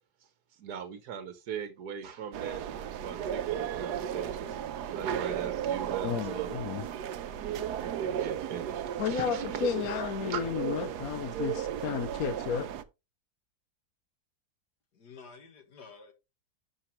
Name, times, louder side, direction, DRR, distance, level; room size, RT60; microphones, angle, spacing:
voice 1, 0.6-2.6 3.0-6.5 7.8-9.6 10.3-10.4, right 8 dB, 75° right, 1.5 m, -40 dB
sound 1, 2.3-12.8, right 9 dB, 90° right, 1.3 m, -35 dB
voice 2, 6.0-6.9 9.0-12.7, left 7 dB, 65° left, 1.2 m, -32 dB
voice 3, 14.9-16.1, left 5 dB, 90° left, 2.4 m, -50 dB
12.0 x 5.5 x 3.1 m
omnidirectional pair, 1.7 m